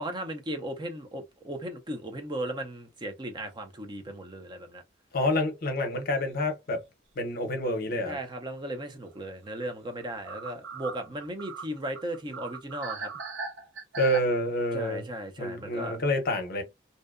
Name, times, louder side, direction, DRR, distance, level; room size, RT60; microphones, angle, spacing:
voice 1, 0.0-4.8 8.1-13.1 14.7-16.0, right 1 dB, 25° right, 0.5 m, -36 dB
voice 2, 5.1-6.8 7.2-8.2 14.0-15.0 15.4-16.6, left 1 dB, 50° left, 0.7 m, -28 dB
sound 1, 6.1-6.3 6.7-6.8 9.2-9.3 9.6-9.7 10.0-14.2, right 4 dB, 85° right, 0.7 m, -39 dB
2.6 x 2.1 x 2.4 m
head